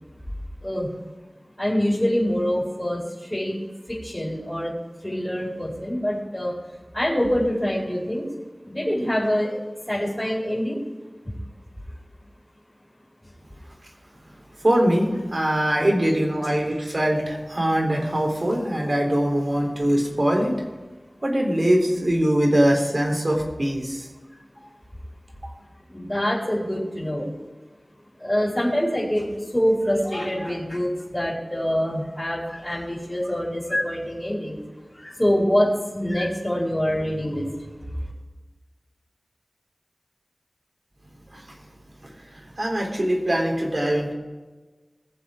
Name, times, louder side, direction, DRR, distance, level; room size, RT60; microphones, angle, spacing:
voice 1, 1.6-3.6 3.9-4.7 5.0-6.6 6.9-8.2 8.6-9.6 9.9-10.8 24.5-24.7 25.9-27.3 28.2-34.6 34.9-37.5, equal, 15° left, -5 dB, 4.4 m, -25 dB
voice 2, 14.6-20.6 21.2-24.1 41.3-41.4 42.0-44.1, right 1 dB, 50° right, 1 dB, 3.7 m, -22 dB
21.0 x 7.4 x 5.1 m, 1.3 s
wide cardioid pair, 60°, 0 cm